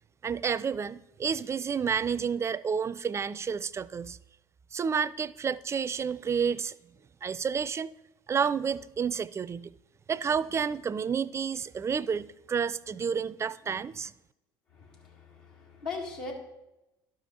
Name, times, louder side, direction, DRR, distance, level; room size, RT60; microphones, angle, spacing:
voice 1, 0.2-4.2 4.7-6.7 7.2-7.9 8.3-9.7 10.1-14.1, right 6 dB, 25° right, 0.3 m, -30 dB
voice 2, 14.8-16.3, left 4 dB, 80° left, 2.2 m, -39 dB
12.0 x 5.1 x 4.2 m
hypercardioid pair, 65°, 11 cm